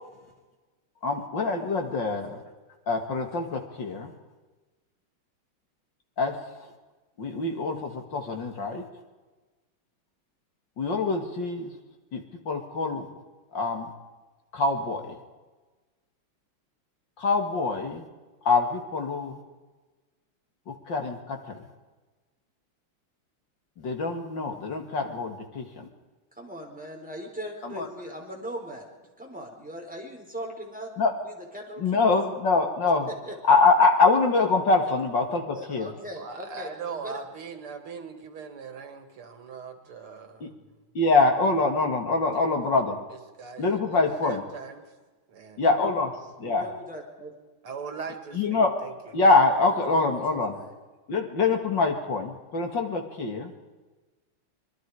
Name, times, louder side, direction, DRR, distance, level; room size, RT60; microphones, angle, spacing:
voice 1, 1.0-2.4 2.9-4.1 6.2-6.7 7.2-8.8 10.8-11.7 12.1-13.1 13.5-13.9 14.5-15.2 17.2-18.1 18.4-19.4 20.7-21.6 23.8-25.9 27.6-27.9 31.0-31.1 31.8-33.1 33.5-35.9 40.4-40.5 40.9-43.0 43.6-44.4 45.6-46.1 46.4-46.7 48.3-48.8 49.1-50.6 51.1-53.5, left 3 dB, 60° left, 4 dB, 2.8 m, -24 dB
voice 2, 26.4-28.8 29.2-30.9 31.2-31.8 33.3-33.4 35.5-37.2 46.4-47.3 49.9-50.2 50.5-50.7, equal, 5° right, 0 dB, 4.3 m, -39 dB
voice 3, 36.2-40.5 42.3-42.5 43.4-44.8 45.3-45.6 47.6-48.9, right 5 dB, 85° right, 6 dB, 2.9 m, -40 dB
25.5 x 22.0 x 4.9 m, 1.2 s
omnidirectional pair, 2.3 m